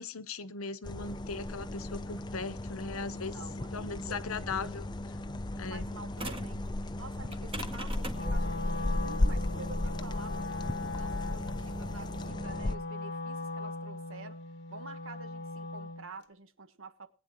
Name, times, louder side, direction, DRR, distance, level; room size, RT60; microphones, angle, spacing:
voice 1, 0.0-3.4 3.7-5.2 5.6-5.8, left 4 dB, 80° left, 0.9 m, -38 dB
sound 1, 0.8-12.7, left 1 dB, 20° left, 0.5 m, -35 dB
voice 2, 3.1-4.3 5.5-6.6 7.0-14.4 14.7-17.1, right 3 dB, 70° right, 1.4 m, -49 dB
sound 2, 6.2-6.6 7.3-12.2, right 1 dB, 25° right, 1.9 m, -43 dB
Wind instrument woodwind instrument, 8.1-16.1, left 2 dB, 50° left, 1.0 m, -39 dB
20.5 x 9.3 x 3.0 m
head